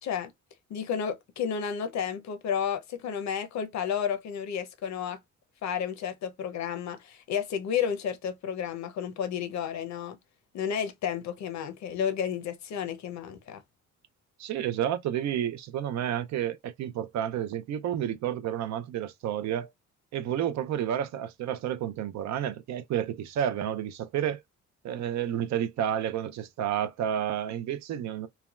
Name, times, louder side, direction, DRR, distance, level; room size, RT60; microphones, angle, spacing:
voice 1, 0.7-5.2 5.6-10.2 10.5-13.6, left 8 dB, 65° left, 0.7 m, -32 dB
voice 2, 14.4-19.7 20.1-24.4 24.8-28.3, right 10 dB, 65° right, 0.5 m, -30 dB
3.3 x 2.2 x 2.3 m
cardioid pair, 90°, 30 cm